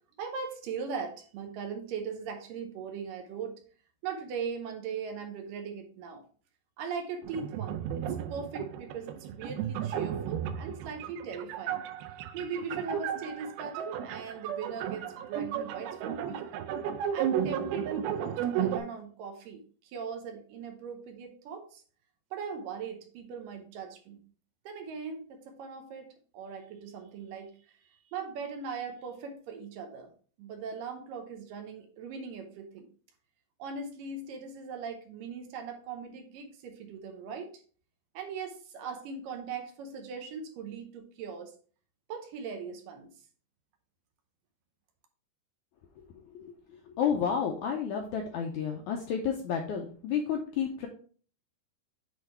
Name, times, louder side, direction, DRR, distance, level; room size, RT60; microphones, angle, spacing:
voice 1, 0.2-3.6 4.0-6.2 6.8-11.8 12.3-16.4 17.1-21.8 22.3-24.2 24.7-27.5 28.1-30.1 30.4-32.9 33.6-37.5 38.1-41.6 42.1-43.1, right 5 dB, 75° right, 4 dB, 2.3 m, -39 dB
sound 1, 7.2-18.8, right 9 dB, 90° right, 2.5 m, -34 dB
voice 2, 46.0-50.9, left 7 dB, 80° left, 2 dB, 1.7 m, -31 dB
8.0 x 3.3 x 4.3 m, 0.43 s
omnidirectional pair, 4.3 m